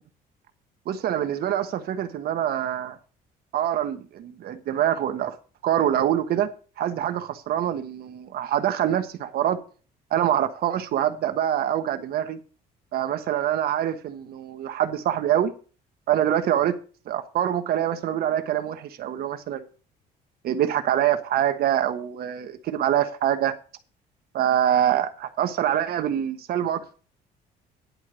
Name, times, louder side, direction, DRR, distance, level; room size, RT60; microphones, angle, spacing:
voice 1, 0.9-3.0 3.5-5.4 5.6-6.5 6.8-9.6 10.1-12.4 12.9-15.5 16.1-16.7 17.1-19.7 20.4-23.5 24.3-27.0, right 10 dB, 65° right, 1.3 m, -25 dB
11.0 x 4.6 x 6.8 m
cardioid pair, 110°, 17 cm